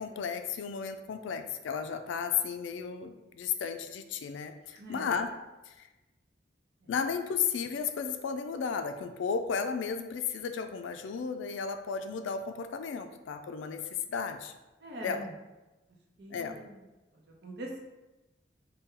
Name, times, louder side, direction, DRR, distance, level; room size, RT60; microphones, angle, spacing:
voice 1, 0.0-5.3 5.7-5.9 6.9-14.5 15.0-15.3 16.3-16.6, left 6 dB, 80° left, 7 dB, 0.3 m, -34 dB
voice 2, 4.7-5.1 6.8-6.9 14.8-15.3 16.2-16.9 17.1-17.8, right 1 dB, 60° right, 0 dB, 0.7 m, -43 dB
4.1 x 2.2 x 3.7 m, 1.1 s
head